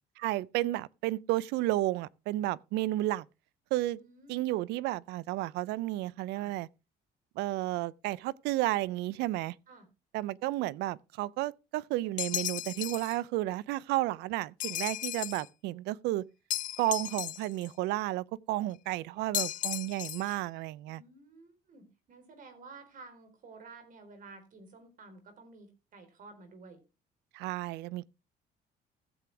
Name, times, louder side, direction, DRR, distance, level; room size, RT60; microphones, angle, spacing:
voice 1, 0.2-3.3 3.7-4.0 4.3-6.7 7.4-9.6 10.1-16.2 16.8-21.0 27.3-28.1, right 16 dB, 85° right, 0.5 m, -32 dB
voice 2, 4.0-4.5 6.3-6.5 9.7-9.9 20.8-26.8, right 3 dB, 55° right, 4.0 m, -52 dB
sound 1, 12.2-13.2 14.6-15.5 16.5-17.7 19.3-20.4, left 13 dB, 50° left, 0.4 m, -35 dB
15.0 x 7.7 x 3.4 m
cardioid pair, 110°, 17 cm